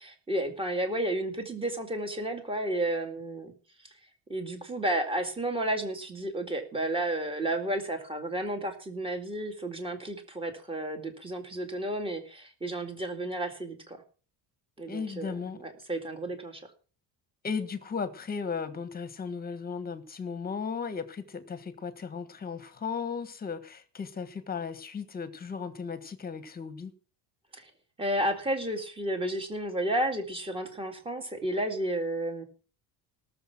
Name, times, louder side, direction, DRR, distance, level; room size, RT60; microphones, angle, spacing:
voice 1, 0.0-3.5 4.3-14.0 14.8-16.6 27.5-27.7 28.0-32.4, right 1 dB, 10° right, 6 dB, 2.2 m, -32 dB
voice 2, 14.9-15.6 17.4-26.9, left 5 dB, 20° left, 12 dB, 1.4 m, -36 dB
18.0 x 7.1 x 6.0 m, 0.39 s
cardioid pair, 160°, 44 cm